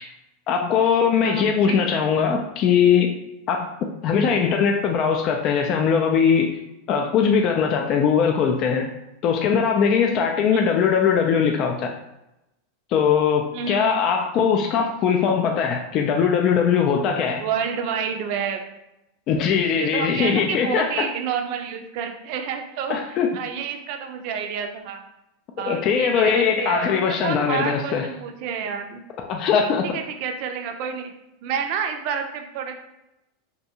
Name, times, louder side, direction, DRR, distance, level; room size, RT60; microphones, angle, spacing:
voice 1, 0.5-3.2 3.5-3.7 4.0-6.5 6.9-8.9 9.2-11.9 12.9-17.4 19.3-20.9 22.9-23.3 25.7-28.1 29.3-29.8, left 7 dB, 45° left, 2 dB, 0.3 m, -20 dB
voice 2, 1.2-1.8 10.5-10.8 13.5-14.0 17.4-18.6 19.8-25.0 25.6-29.1 29.9-31.1 31.4-32.7, right 7 dB, 60° right, 6 dB, 0.4 m, -29 dB
2.6 x 2.2 x 2.8 m, 0.89 s
hypercardioid pair, 105°, 0 cm